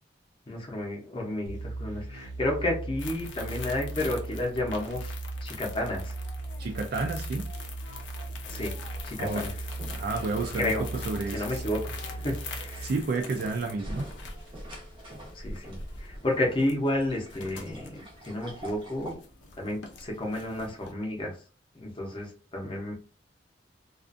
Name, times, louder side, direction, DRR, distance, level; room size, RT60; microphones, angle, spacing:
voice 1, 0.5-5.1 5.4-6.1 8.5-8.7 9.0-9.6 10.6-10.8 11.3-11.9 12.2-12.9 15.3-19.2 19.6-21.3 21.7-22.9, left 1 dB, 30° left, 0 dB, 0.7 m, -31 dB
sound 1, 1.5-13.0, right 2 dB, 75° right, 0.8 m, -38 dB
sound 2, 3.0-20.9, left 4 dB, 75° left, 0.5 m, -44 dB
voice 2, 6.6-7.4 9.2-9.4 9.9-10.7 11.1-11.6 12.8-14.1, right 3 dB, 55° right, 3 dB, 0.3 m, -31 dB
sound 3, 8.4-19.1, right 1 dB, 25° right, 0.7 m, -46 dB
2.4 x 2.4 x 2.4 m, 0.37 s
head